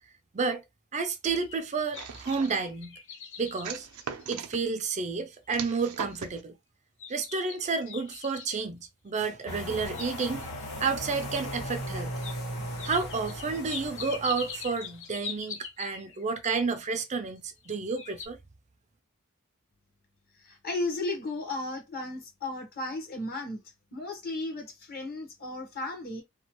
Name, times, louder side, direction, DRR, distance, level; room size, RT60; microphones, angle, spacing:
voice 1, 0.9-2.9 3.4-3.9 4.3-6.5 7.1-10.5 10.8-12.1 12.5-18.4, right 4 dB, 35° right, 0.4 m, -31 dB
sound 1, 1.1-4.7 5.2-5.3 5.8-6.2 7.0-8.6 9.6-10.6 11.3-11.4 12.2-12.4 12.8-16.2 17.3-17.7 18.0-18.3, left 6 dB, 60° left, 0.6 m, -42 dB
sound 2, 1.9-2.7 3.6-4.6 5.5-6.4, right 6 dB, 90° right, 0.5 m, -39 dB
sound 3, 9.5-15.0, equal, 85° left, 2.0 m, -37 dB
voice 2, 20.4-23.6 23.9-26.2, left 2 dB, 45° left, 1.1 m, -34 dB
3.0 x 2.3 x 3.0 m
head